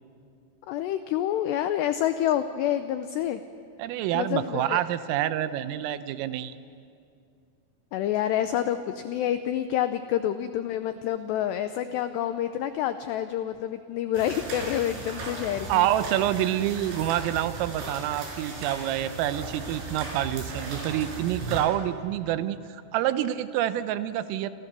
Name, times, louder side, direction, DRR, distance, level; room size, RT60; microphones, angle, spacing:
voice 1, 0.7-3.4 4.1-4.8 7.9-15.9, left 11 dB, 85° left, 10 dB, 2.4 m, -28 dB
voice 2, 3.8-6.6 15.7-24.5, right 12 dB, 85° right, 12 dB, 3.6 m, -27 dB
sound 1, 14.1-21.6, right 3 dB, 60° right, 7.1 m, -37 dB
29.0 x 26.5 x 6.9 m, 2.4 s
omnidirectional pair, 5.9 m